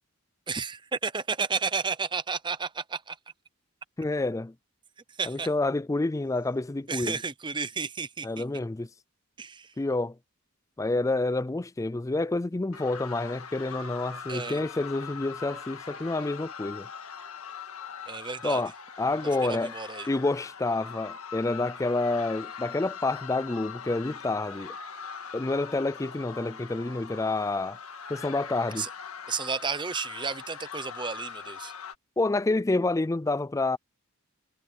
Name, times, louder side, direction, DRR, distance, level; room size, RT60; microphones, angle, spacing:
voice 1, 0.5-3.2 5.2-5.5 6.9-8.4 9.4-9.7 14.3-14.6 18.1-18.6 19.4-20.1 28.8-28.9 29.3-31.7, right 5 dB, 20° right, 0.8 m, -32 dB
voice 2, 4.0-4.5 5.3-7.2 8.2-8.9 9.8-10.1 10.8-16.9 18.4-18.7 19.0-19.7 20.1-24.7 25.3-27.8 28.1-28.9 32.2-33.8, left 2 dB, 15° left, 0.4 m, -28 dB
sound 1, 12.7-32.0, left 6 dB, 85° left, 1.8 m, -42 dB
head